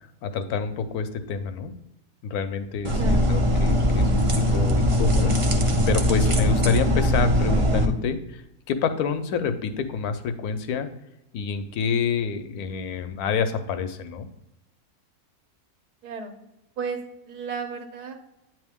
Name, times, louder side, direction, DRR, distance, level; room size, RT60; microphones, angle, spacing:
voice 1, 0.2-1.7 2.2-5.4 5.9-8.4 8.7-10.9 11.3-14.3, left 6 dB, 75° left, 9 dB, 1.1 m, -28 dB
sound 1, 2.8-7.8, equal, 55° right, 0.3 m, -21 dB
voice 2, 16.0-16.3 16.8-17.0 17.3-18.1, right 5 dB, 90° right, 5 dB, 1.4 m, -33 dB
8.8 x 3.1 x 3.5 m, 0.91 s
omnidirectional pair, 1.6 m